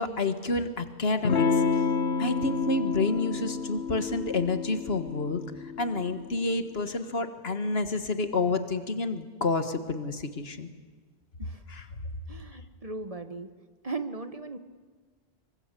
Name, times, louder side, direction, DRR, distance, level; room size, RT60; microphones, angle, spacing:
voice 1, 0.0-1.8 2.2-5.4 5.8-10.7 11.7-11.9, left 3 dB, 65° left, 9 dB, 1.8 m, -29 dB
Electric guitar / Strum, 1.2-6.4, left 5 dB, 80° left, 1.5 m, -29 dB
voice 2, 12.3-13.5 13.8-14.6, right 3 dB, 35° right, 9 dB, 1.3 m, -37 dB
26.0 x 23.5 x 8.3 m, 1.4 s
omnidirectional pair, 1.1 m